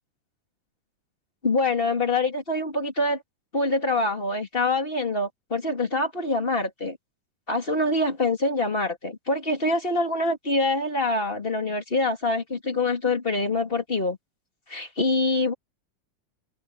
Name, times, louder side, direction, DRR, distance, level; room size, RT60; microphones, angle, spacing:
voice 1, 1.4-3.2 3.5-7.0 7.5-14.2 14.7-15.5, left 2 dB, 20° left, 2.5 m, -25 dB
omnidirectional pair, 3.9 m